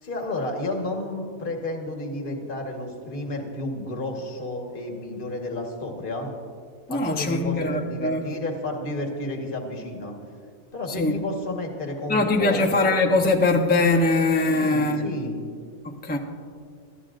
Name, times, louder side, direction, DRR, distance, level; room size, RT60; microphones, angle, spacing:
voice 1, 0.0-6.3 6.9-10.1 10.7-12.9 14.5-15.4, left 2 dB, 40° left, 2 dB, 1.6 m, -31 dB
voice 2, 6.9-8.2 10.9-11.2 12.1-15.1 15.8-16.2, left 2 dB, 10° left, 2 dB, 0.7 m, -22 dB
24.0 x 12.5 x 2.5 m, 2.2 s
omnidirectional pair, 1.4 m